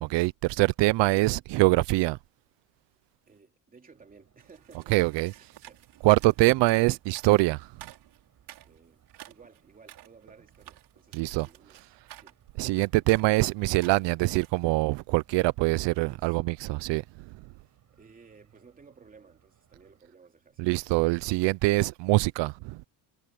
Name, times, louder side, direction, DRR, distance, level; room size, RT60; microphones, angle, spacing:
voice 1, 0.0-2.2 4.9-5.3 6.0-7.8 11.1-11.5 12.6-17.3 20.6-22.8, right 21 dB, 85° right, 0.6 m, -24 dB
voice 2, 3.3-5.0 5.3-5.9 8.6-12.4 15.9-16.4 17.9-21.0, right 5 dB, 20° right, 3.2 m, -56 dB
sound 1, 3.9-20.0, right 10 dB, 45° right, 6.7 m, -64 dB
sound 2, 4.4-14.6, right 13 dB, 70° right, 5.8 m, -52 dB
cardioid pair, 170°, 42 cm